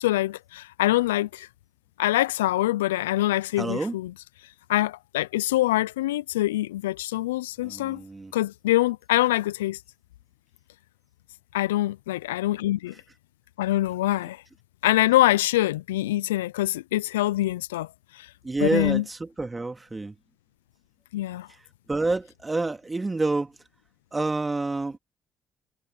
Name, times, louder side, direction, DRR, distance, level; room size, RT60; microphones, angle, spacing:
voice 1, 0.0-1.5 2.0-4.1 4.7-8.0 8.3-9.8 11.5-12.9 13.6-14.4 14.8-17.9 18.2-18.3 18.6-19.0 21.1-21.5, left 15 dB, 90° left, 0.4 m, -24 dB
voice 2, 3.6-4.0 7.6-8.3 18.4-20.1 21.9-23.5 24.1-25.0, right 3 dB, 25° right, 2.5 m, -28 dB
hypercardioid pair, 50°, 0 cm